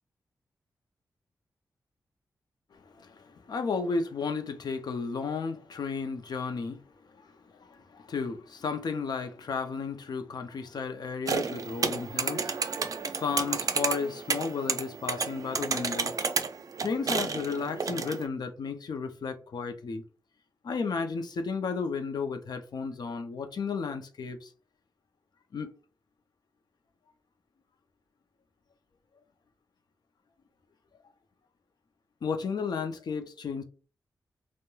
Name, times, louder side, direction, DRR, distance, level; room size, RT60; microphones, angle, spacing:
voice 1, 2.7-6.8 7.1-16.2 16.8-20.0 20.6-24.5 25.5-25.7 32.2-33.6, left 5 dB, 65° left, 0.5 m, -33 dB
sound 1, 11.3-18.3, right 5 dB, 50° right, 0.4 m, -31 dB
2.9 x 2.1 x 2.2 m
cardioid pair, 50°, 8 cm